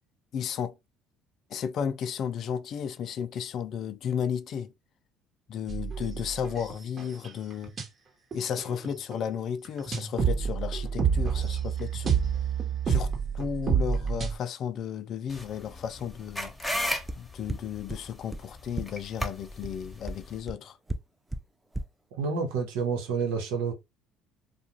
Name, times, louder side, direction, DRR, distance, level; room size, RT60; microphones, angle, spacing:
voice 1, 0.3-0.7 1.5-4.7 5.5-7.7 8.3-12.1 12.9-16.5 17.2-20.8, left 8 dB, 55° left, 0.3 m, -33 dB
sound 1, 5.7-7.8 8.3-9.1 9.6-14.3, right 6 dB, 40° right, 1.1 m, -28 dB
sound 2, 15.3-20.4, left 1 dB, 10° left, 1.0 m, -36 dB
sound 3, 17.1-17.2 17.5-17.6 17.9-18.0 18.3-18.4 18.8-18.9 19.2-19.3 19.6-19.7 20.1-20.2 20.5-20.6 20.9-21.0 21.3-21.4 21.7-21.8, right 2 dB, 15° right, 0.4 m, -31 dB
voice 2, 22.1-23.7, right 5 dB, 80° right, 0.9 m, -29 dB
2.4 x 2.2 x 2.9 m
hypercardioid pair, 65°, 0 cm